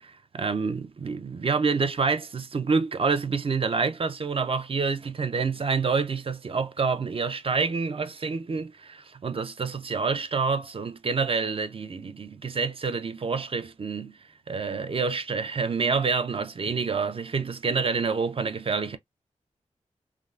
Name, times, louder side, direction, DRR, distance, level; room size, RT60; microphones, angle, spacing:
voice 1, 0.0-14.2 14.5-19.0, right 5 dB, 45° right, 0.4 m, -27 dB
3.4 x 2.4 x 2.3 m
wide cardioid pair, 100°, 13 cm